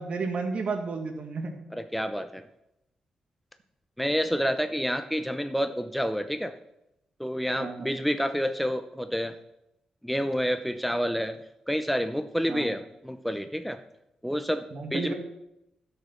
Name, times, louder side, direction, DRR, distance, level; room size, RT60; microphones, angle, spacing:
voice 1, 0.0-1.6 7.6-7.9 12.5-12.7 14.7-15.1, right 4 dB, 60° right, 5 dB, 2.0 m, -32 dB
voice 2, 1.7-2.4 4.0-6.5 7.2-9.3 10.0-11.4 11.7-13.8 14.2-14.6 14.9-15.1, equal, ahead, 9 dB, 0.7 m, -28 dB
11.5 x 6.5 x 6.2 m, 0.85 s
cardioid pair, 75°, 2 cm